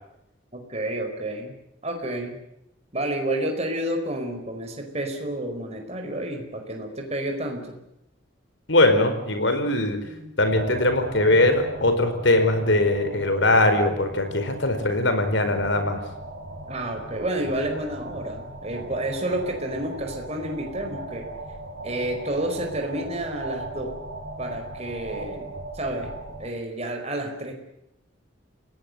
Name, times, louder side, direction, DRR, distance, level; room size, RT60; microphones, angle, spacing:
voice 1, 0.5-1.6 1.8-2.4 2.9-7.8 10.0-10.3 16.7-21.3 21.8-24.0 24.4-26.1 26.4-27.5, right 1 dB, 30° right, 3 dB, 4.7 m, -30 dB
voice 2, 8.7-10.0 10.4-16.0, left 2 dB, 65° left, 8 dB, 4.7 m, -21 dB
sound 1, 10.4-26.5, right 2 dB, 70° right, 5.5 m, -38 dB
30.0 x 17.5 x 7.9 m, 0.83 s
head